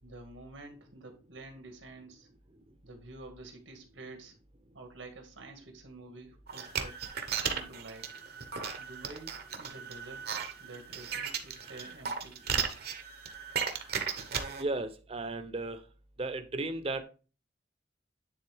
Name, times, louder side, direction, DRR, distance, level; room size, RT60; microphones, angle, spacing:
voice 1, 0.0-2.3 2.8-4.3 4.7-7.0 7.4-8.2 8.8-12.3, right 2 dB, 85° right, 3 dB, 2.0 m, -49 dB
sound 1, 6.5-14.6, right 6 dB, 55° right, 1.0 m, -36 dB
voice 2, 14.3-15.9 16.2-17.0, right 2 dB, 30° right, 10 dB, 0.7 m, -35 dB
9.5 x 3.9 x 3.5 m, 0.35 s
head